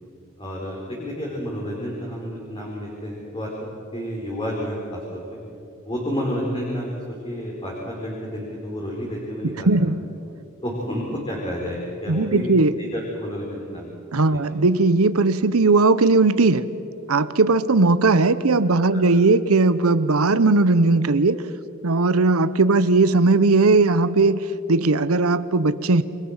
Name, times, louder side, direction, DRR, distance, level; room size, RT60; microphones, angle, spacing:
voice 1, 0.4-5.4 5.8-9.8 10.6-13.9 14.3-14.4 18.9-19.0, equal, 25° left, -3 dB, 4.4 m, -30 dB
voice 2, 9.4-10.0 12.1-12.8 14.1-16.7 17.1-21.4 21.8-26.0, right 3 dB, 80° right, 14 dB, 0.9 m, -18 dB
29.0 x 23.0 x 7.3 m, 2.7 s
head